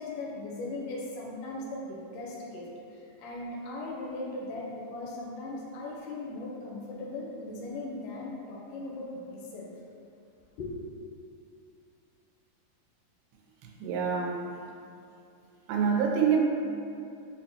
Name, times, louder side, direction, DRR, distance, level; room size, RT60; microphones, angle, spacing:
voice 1, 0.0-9.7 10.6-10.7, left 2 dB, 80° left, -4 dB, 1.9 m, -38 dB
voice 2, 13.6-14.5 15.7-16.4, right 6 dB, 90° right, -1 dB, 2.3 m, -26 dB
6.1 x 2.0 x 2.7 m, 2.6 s
omnidirectional pair, 4.0 m